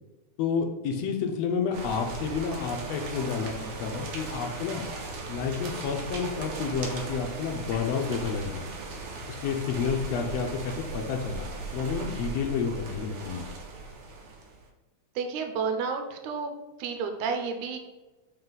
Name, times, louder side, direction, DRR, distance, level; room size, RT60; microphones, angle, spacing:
voice 1, 0.4-4.8 5.3-8.7 9.4-13.4, left 5 dB, 80° left, 3 dB, 1.5 m, -30 dB
sound 1, 1.7-14.7, right 3 dB, 65° right, 1.5 m, -38 dB
voice 2, 15.2-16.5 16.8-17.8, right 5 dB, 80° right, 5 dB, 2.0 m, -31 dB
5.6 x 4.8 x 3.9 m, 1.2 s
omnidirectional pair, 3.6 m